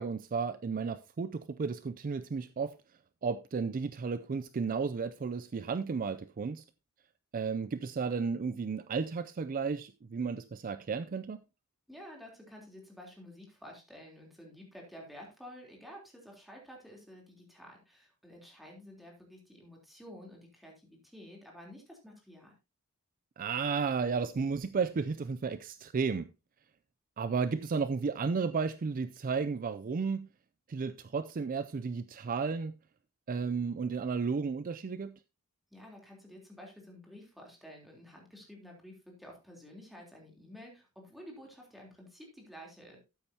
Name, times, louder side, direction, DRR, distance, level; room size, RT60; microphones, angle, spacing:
voice 1, 0.0-2.7 3.2-6.6 7.3-11.4 23.4-26.3 27.2-30.3 30.7-32.7 33.3-35.2, right 5 dB, 40° right, 0.4 m, -33 dB
voice 2, 11.9-22.5 35.7-43.0, equal, ahead, 3.3 m, -51 dB
13.0 x 8.6 x 2.8 m
head